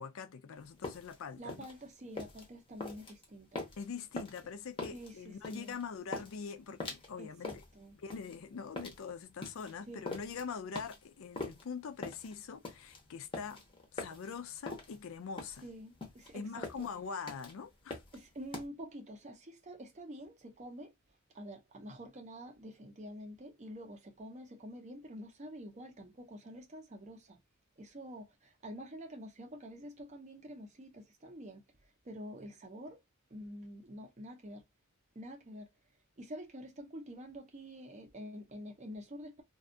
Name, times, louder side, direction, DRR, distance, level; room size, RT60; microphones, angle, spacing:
voice 1, 0.0-1.7 3.8-7.5 8.0-13.6 13.9-15.7 16.3-18.0, left 5 dB, 60° left, 0.4 m, -43 dB
sound 1, 0.6-18.6, left 2 dB, 25° left, 0.7 m, -44 dB
voice 2, 1.4-3.6 4.9-5.8 7.2-8.0 9.9-10.0 15.6-16.9 18.1-20.9 21.3-27.4 27.8-33.0 33.3-34.6 35.2-35.7 36.2-39.4, equal, 30° right, 0.5 m, -48 dB
2.5 x 2.3 x 2.5 m
head